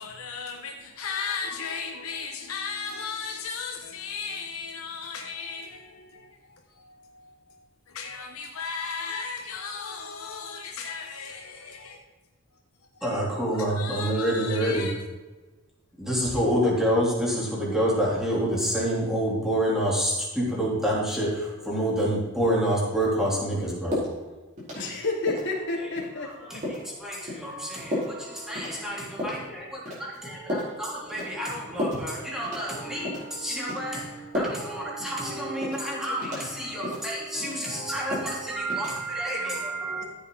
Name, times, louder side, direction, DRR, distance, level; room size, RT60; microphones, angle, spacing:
voice 1, 0.0-12.0 13.0-13.3 13.7-15.0, left 5 dB, 90° left, 1.2 m, -36 dB
voice 2, 13.0-14.9 16.0-24.0 26.5-40.0, right 1 dB, ahead, 3.3 m, -28 dB
sound 1, 23.9-24.1 24.6-25.0 25.3-25.5 26.0-26.1 26.6-26.9 27.3-27.4 27.9-28.1 28.6-28.8 29.2-29.4 29.9-30.2 30.5-30.7 31.2-31.5 31.8-32.0 32.4-32.8 33.0-33.3 33.7-33.8 34.3-34.7 35.0-35.1 35.6-35.8 36.2-36.5 36.8-37.0 37.4-37.8 38.1-38.3 38.7-38.9, left 1 dB, 35° right, 4.1 m, -31 dB
voice 3, 24.7-26.6, left 2 dB, 55° left, 2.9 m, -30 dB
14.0 x 8.1 x 3.9 m
head